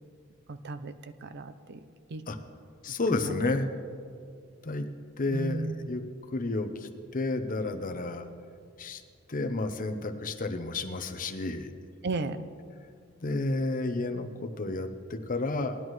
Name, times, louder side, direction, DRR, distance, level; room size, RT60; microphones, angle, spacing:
voice 1, 0.5-1.8 2.1-2.2 3.2-3.3 5.3-5.7 12.0-12.5, right 3 dB, 55° right, 11 dB, 0.5 m, -35 dB
voice 2, 2.8-3.7 4.6-4.9 5.2-6.0 6.3-8.3 8.8-9.0 9.3-11.7 13.2-15.8, left 2 dB, 40° left, 7 dB, 0.7 m, -31 dB
18.5 x 11.0 x 3.1 m, 2.3 s
head